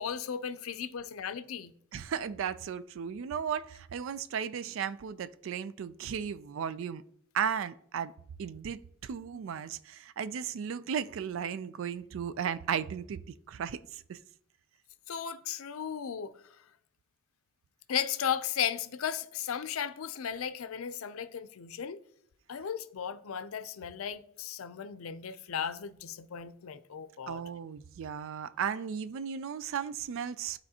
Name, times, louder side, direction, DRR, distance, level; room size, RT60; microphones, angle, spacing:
voice 1, 0.0-1.7 15.1-16.3 17.9-22.0 22.5-27.4, left 8 dB, 85° left, 0.5 m, -35 dB
voice 2, 1.9-7.0 7.3-8.1 8.4-13.2 13.5-14.2 27.3-30.6, right 7 dB, 65° right, 0.3 m, -35 dB
12.0 x 4.3 x 2.8 m
head